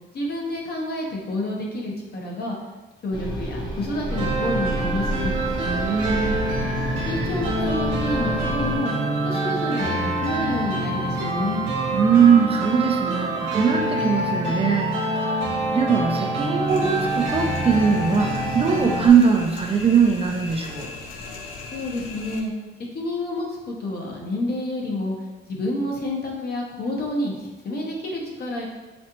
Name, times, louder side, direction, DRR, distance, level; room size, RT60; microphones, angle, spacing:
voice 1, 0.1-2.6 3.0-5.4 7.1-8.9 9.2-11.6 21.7-22.5 22.9-25.2 25.5-28.7, left 1 dB, 50° left, -1 dB, 0.9 m, -29 dB
sound 1, 3.1-8.8, equal, 20° left, 0.8 m, -30 dB
sound 2, 4.1-19.1, right 1 dB, 90° right, 0.8 m, -26 dB
voice 2, 5.6-6.4 11.9-15.4 15.7-20.9, right 6 dB, 30° right, 2 dB, 0.4 m, -20 dB
sound 3, 16.7-22.4, left 3 dB, 90° left, 0.5 m, -38 dB
4.2 x 2.4 x 2.8 m, 1.2 s
cardioid pair, 90°, 20 cm